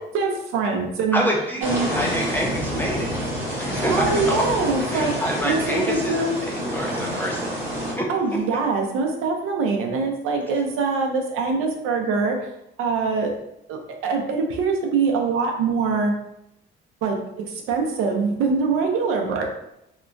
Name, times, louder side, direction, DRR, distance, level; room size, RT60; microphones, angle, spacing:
voice 1, 0.0-1.2 1.6-1.9 3.9-6.4 8.1-12.5 12.8-13.4 13.7-16.1 17.0-19.5, right 4 dB, 80° right, 2 dB, 0.6 m, -24 dB
voice 2, 1.1-3.1 3.6-4.4 4.9-7.6 8.0-8.1, equal, 10° left, -1 dB, 0.3 m, -27 dB
sound 1, 1.6-7.9, equal, 10° right, 0.7 m, -27 dB
2.9 x 2.2 x 2.5 m, 0.82 s
cardioid pair, 155°, 21 cm